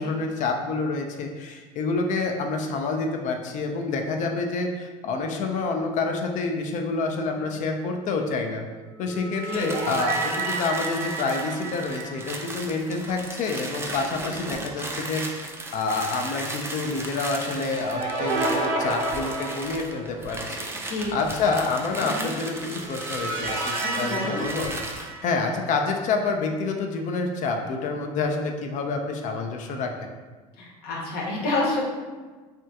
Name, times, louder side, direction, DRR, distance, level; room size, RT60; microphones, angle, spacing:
voice 1, 0.0-8.6 9.0-15.2 15.7-20.7 21.1-24.7 25.2-30.1, left 3 dB, 50° left, 3 dB, 0.5 m, -28 dB
sound 1, 9.0-13.3 13.6-13.7 17.2-20.3 22.4-25.8, right 2 dB, 60° right, 0.6 m, -31 dB
voice 2, 9.4-10.0 14.2-14.6 20.8-21.1 22.0-22.3 23.8-24.4 30.6-31.8, left 2 dB, 65° left, -2 dB, 0.9 m, -30 dB
sound 2, 9.4-25.1, right 2 dB, 15° right, 0.4 m, -36 dB
3.4 x 2.3 x 2.7 m, 1.3 s
supercardioid pair, 95°, 17 cm